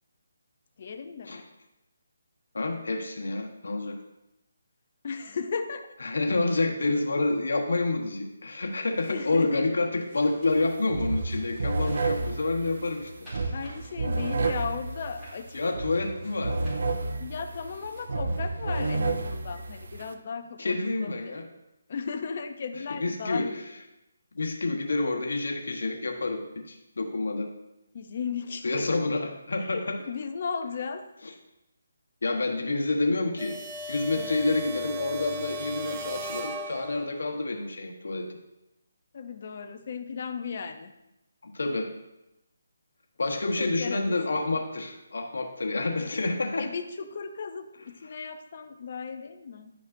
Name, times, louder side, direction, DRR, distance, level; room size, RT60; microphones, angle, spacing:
voice 1, 0.8-1.4 5.0-5.9 8.9-9.6 11.9-12.1 13.5-15.6 17.2-21.4 21.9-23.6 27.9-29.0 29.6-31.1 34.1-34.6 39.1-40.9 43.6-44.4 46.0-46.2 46.6-49.7, left 5 dB, 40° left, 7 dB, 0.6 m, -36 dB
voice 2, 2.5-4.0 6.0-13.5 15.5-16.6 20.6-21.4 23.0-23.5 24.3-26.4 26.7-27.5 28.6-30.0 32.2-33.6 33.9-38.3 41.5-41.9 43.2-46.7, left 2 dB, 75° left, 2 dB, 1.2 m, -28 dB
sound 1, 8.7-12.2 12.6-17.3 18.0-18.1, equal, ahead, 2.9 m, -52 dB
sound 2, 10.5-10.6 10.9-20.1, right 3 dB, 65° right, 0.6 m, -31 dB
sound 3, 33.4-37.3, equal, 20° right, 0.4 m, -37 dB
10.5 x 5.3 x 2.6 m, 0.91 s
hypercardioid pair, 170°, 0 cm